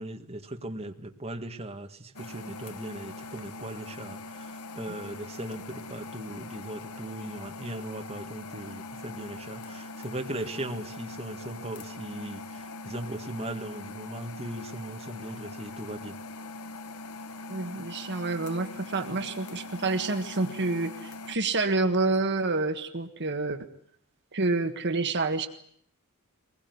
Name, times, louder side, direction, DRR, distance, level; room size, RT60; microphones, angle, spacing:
voice 1, 0.0-16.2, right 1 dB, 30° right, 1.9 m, -38 dB
sound 1, 2.1-21.4, left 3 dB, 90° left, 1.3 m, -42 dB
voice 2, 17.5-23.6 24.3-25.5, right 3 dB, 50° right, 1.6 m, -28 dB
23.0 x 21.0 x 9.5 m
head